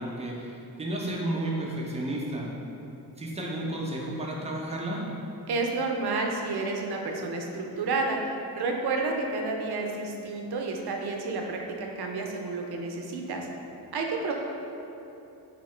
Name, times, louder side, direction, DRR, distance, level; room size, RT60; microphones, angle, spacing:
voice 1, 0.0-2.4 3.2-5.0, right 1 dB, 20° right, -3 dB, 0.4 m, -32 dB
voice 2, 5.5-8.2 8.6-13.5 13.9-14.3, right 3 dB, 75° right, 1 dB, 0.5 m, -30 dB
2.8 x 2.8 x 4.2 m, 2.9 s
wide cardioid pair, 170°, 39 cm